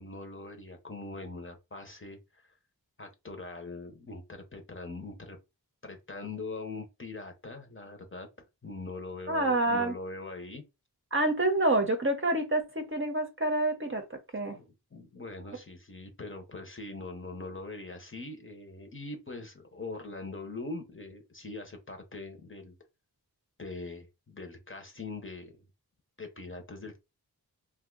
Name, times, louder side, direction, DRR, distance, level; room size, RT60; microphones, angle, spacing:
voice 1, 0.0-2.5 3.0-5.4 5.8-8.3 8.6-10.6 14.6-22.7 23.6-25.6 26.2-27.0, left 3 dB, 30° left, 0.8 m, -42 dB
voice 2, 9.3-9.9 11.1-14.6, right 2 dB, 30° right, 0.7 m, -27 dB
2.6 x 2.3 x 3.8 m
wide cardioid pair, 60°, 39 cm